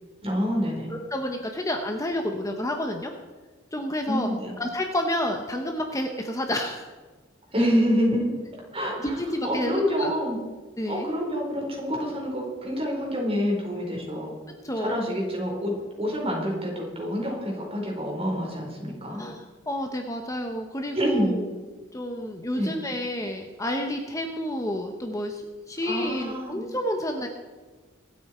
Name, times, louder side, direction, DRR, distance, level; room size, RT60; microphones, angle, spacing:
voice 1, 0.2-0.9 4.1-4.5 7.5-8.4 8.7-9.2 9.4-10.4 10.9-14.3 14.8-19.2 20.9-21.4 22.5-22.7 25.8-26.6, equal, 30° right, -1 dB, 4.3 m, -27 dB
voice 2, 0.9-3.1 3.7-4.3 4.6-6.9 9.0-10.1 10.8-11.1 14.6-15.0 19.1-21.4 21.9-27.3, left 1 dB, 15° left, 4 dB, 1.0 m, -30 dB
25.0 x 8.5 x 4.4 m, 1.4 s
head